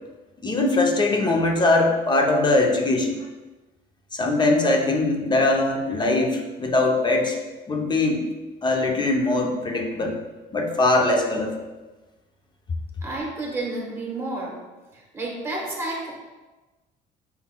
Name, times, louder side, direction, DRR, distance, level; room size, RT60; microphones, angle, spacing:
voice 1, 0.4-3.2 4.1-7.4 7.7-8.2 8.6-10.2 10.5-11.5, left 2 dB, 25° left, 2 dB, 0.7 m, -21 dB
voice 2, 13.0-14.5 14.9-16.1, right 2 dB, 15° right, -3 dB, 1.3 m, -30 dB
5.6 x 3.9 x 2.2 m, 1.2 s
cardioid pair, 110°, 17 cm